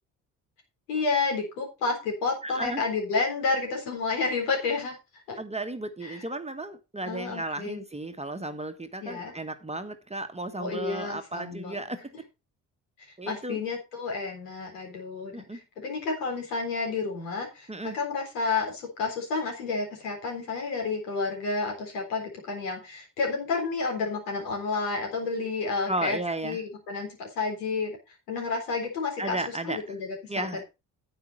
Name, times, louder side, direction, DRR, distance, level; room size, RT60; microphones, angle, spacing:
voice 1, 0.9-5.4 6.0-6.2 7.0-7.8 9.0-9.3 10.6-11.8 13.0-26.2 26.4-29.4 29.6-30.7, left 4 dB, 75° left, 0 dB, 4.0 m, -30 dB
voice 2, 2.4-2.8 3.2-3.3 5.4-12.1 13.2-13.6 15.3-15.6 17.7-18.0 25.9-26.6 29.2-29.9 30.3-30.6, right 2 dB, 15° right, 7 dB, 1.3 m, -34 dB
9.6 x 8.9 x 4.2 m, 0.27 s
figure-of-eight pair, 45°, 46 cm